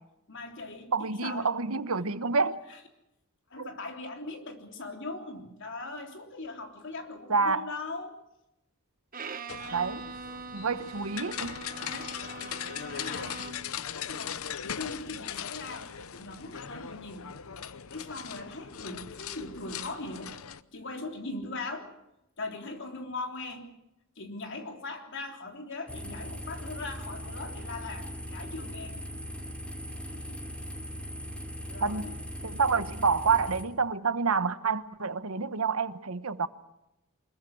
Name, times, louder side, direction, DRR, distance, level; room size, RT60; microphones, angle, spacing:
voice 1, 0.3-1.0 1.2-1.5 2.7-2.8 3.5-8.3 11.8-12.2 12.7-13.4 13.9-17.3 17.9-20.4 20.7-21.9 22.4-23.7 24.2-29.0 31.7-32.2, left 3 dB, 60° left, 4 dB, 3.5 m, -40 dB
voice 2, 0.9-2.6 3.6-3.7 7.3-7.6 9.7-10.0 10.5-11.6 31.8-32.1 32.4-36.5, right 4 dB, 85° right, 13 dB, 1.2 m, -28 dB
Bowed string instrument, 9.1-13.8, right 4 dB, 40° right, 1.3 m, -42 dB
sound 1, 9.5-20.6, left 8 dB, 75° left, 0.8 m, -39 dB
sound 2, 25.9-33.6, equal, 5° left, 3.0 m, -39 dB
25.0 x 21.5 x 6.2 m, 0.88 s
head